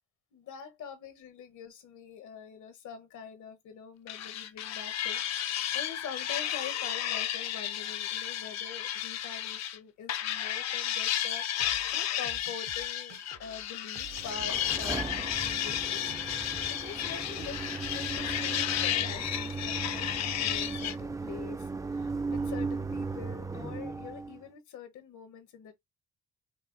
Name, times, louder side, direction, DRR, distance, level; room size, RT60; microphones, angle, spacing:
voice 1, 0.3-17.6 17.9-25.7, left 7 dB, 75° left, 1.3 m, -45 dB
sound 1, 4.1-9.8 10.1-21.0, left 11 dB, 60° left, 0.6 m, -33 dB
sound 2, 11.6-18.4, right 9 dB, 60° right, 0.7 m, -50 dB
sound 3, 14.1-24.4, right 4 dB, 10° right, 0.4 m, -37 dB
5.5 x 2.0 x 3.9 m
cardioid pair, 90°, 30 cm